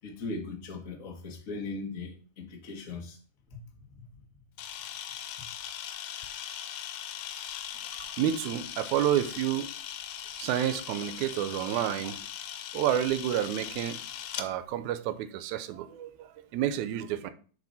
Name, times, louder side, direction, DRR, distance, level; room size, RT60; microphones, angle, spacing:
voice 1, 0.0-3.2 3.5-3.6 4.0-4.1, left 3 dB, 45° left, 1.1 m, -39 dB
Camera, 4.6-14.5, left 10 dB, 85° left, 2.2 m, -40 dB
voice 2, 8.1-9.7 10.4-12.2 12.7-14.1 14.4-17.3, right 11 dB, 80° right, 1.9 m, -29 dB
7.1 x 4.8 x 4.1 m
omnidirectional pair, 3.6 m